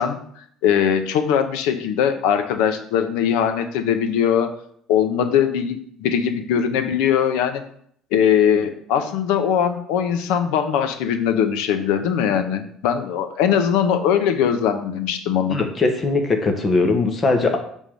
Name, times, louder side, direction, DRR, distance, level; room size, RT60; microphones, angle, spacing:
voice 1, 0.0-4.5 4.9-7.6 8.1-15.6, left 8 dB, 90° left, 8 dB, 0.8 m, -21 dB
voice 2, 15.5-17.6, left 3 dB, 25° left, 5 dB, 1.2 m, -20 dB
6.9 x 3.6 x 6.2 m, 0.64 s
cardioid pair, 150°, 0 cm